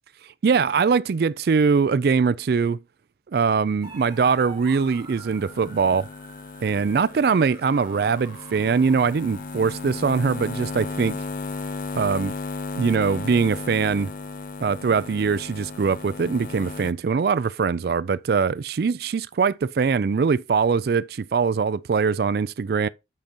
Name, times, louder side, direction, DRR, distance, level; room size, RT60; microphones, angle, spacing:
voice 1, 0.4-2.8 3.3-6.1 6.6-11.2 11.9-12.3 12.8-14.1 14.6-22.9, right 5 dB, 60° right, 0.4 m, -22 dB
sound 1, 3.8-16.9, left 4 dB, 50° left, 0.5 m, -36 dB
sound 2, 3.8-14.5, right 4 dB, 25° right, 2.7 m, -49 dB
7.5 x 5.1 x 4.5 m
head